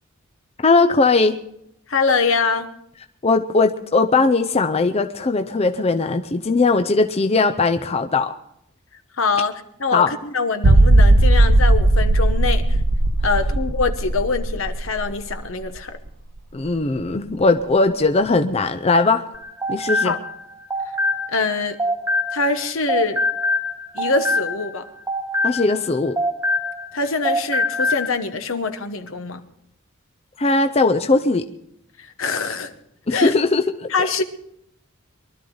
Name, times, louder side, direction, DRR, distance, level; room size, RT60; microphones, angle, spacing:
voice 1, 0.6-1.4 3.2-8.4 9.9-10.1 16.5-19.3 19.7-20.1 25.4-26.2 30.4-31.4 33.1-33.9, left 3 dB, 30° left, 7 dB, 0.5 m, -19 dB
voice 2, 1.9-2.7 9.2-12.6 13.2-16.0 20.0-20.2 21.3-21.8 22.3-23.2 23.9-24.8 26.9-29.4 32.2-32.7 33.1-33.3 33.9-34.2, left 4 dB, 70° left, 8 dB, 1.2 m, -23 dB
sound 1, 10.6-16.1 16.4-16.5 17.0-17.1, right 1 dB, 85° right, 0.9 m, -17 dB
sound 2, 19.3-22.6 22.9-27.0 27.2-28.1, left 1 dB, 15° right, 1.0 m, -24 dB
23.0 x 12.5 x 3.9 m, 0.75 s
head